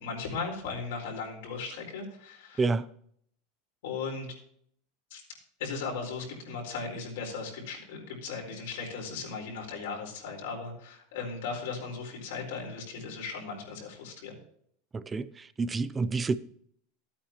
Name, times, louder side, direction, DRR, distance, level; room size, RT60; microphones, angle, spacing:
voice 1, 0.0-2.7 3.8-4.3 5.1-5.2 5.6-14.4, left 4 dB, 80° left, 4.4 m, -37 dB
voice 2, 14.9-16.4, right 4 dB, 15° right, 0.5 m, -29 dB
13.5 x 8.8 x 2.9 m
supercardioid pair, 130°, 0 cm